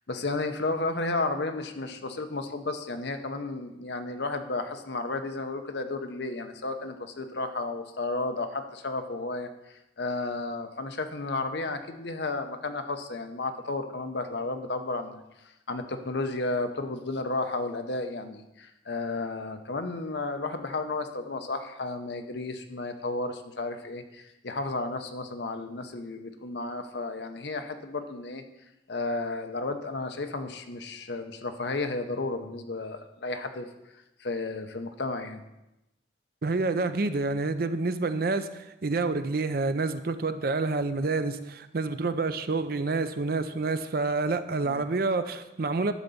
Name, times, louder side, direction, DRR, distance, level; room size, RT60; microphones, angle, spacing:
voice 1, 0.1-28.4 28.9-33.7 33.9-35.4 44.6-44.8, left 3 dB, 60° left, 7 dB, 0.8 m, -33 dB
voice 2, 36.4-45.9, right 3 dB, 50° right, 11 dB, 0.5 m, -28 dB
11.0 x 4.0 x 7.0 m, 0.95 s
head